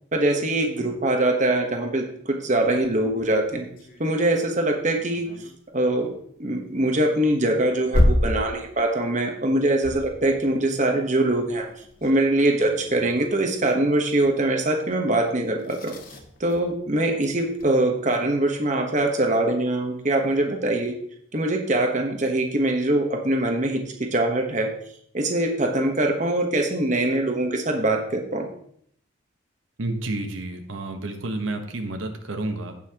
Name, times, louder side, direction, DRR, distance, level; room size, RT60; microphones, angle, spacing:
voice 1, 0.1-3.7 4.0-5.3 5.7-6.1 6.4-11.7 12.0-15.9 16.4-20.9 21.3-23.8 24.1-24.7 25.1-28.5, right 1 dB, 35° right, 3 dB, 1.2 m, -23 dB
sound 1, 2.7-17.8 19.1-19.2 19.5-19.6 19.8-20.5, left 1 dB, 45° left, 1.1 m, -32 dB
voice 2, 29.8-32.7, right 2 dB, 75° right, 5 dB, 1.1 m, -30 dB
16.0 x 5.6 x 2.9 m, 0.66 s
head